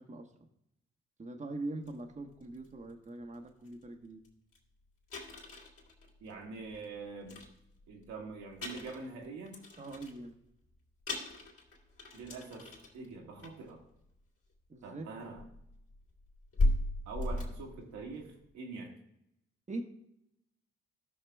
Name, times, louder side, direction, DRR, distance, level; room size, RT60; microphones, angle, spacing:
voice 1, 1.2-4.2 9.8-10.3 14.7-15.1 19.7-19.8, right 2 dB, 25° right, 4 dB, 1.3 m, -42 dB
sound 1, 1.9-2.0 2.4-2.7 3.3-3.4 3.7-3.8 4.2-4.3 4.5-4.6 5.1-6.8 7.2-8.1 8.5-10.3 10.7-10.8 11.1-13.1 13.4-13.7 14.8-14.9 15.4-18.4, left 2 dB, 50° left, 3.1 m, -36 dB
voice 2, 6.2-7.4 7.9-9.6 12.1-13.8 14.8-15.4 17.1-19.0, right 4 dB, 70° right, 0 dB, 1.8 m, -44 dB
16.0 x 6.4 x 2.3 m, 0.80 s
hypercardioid pair, 40°, 30 cm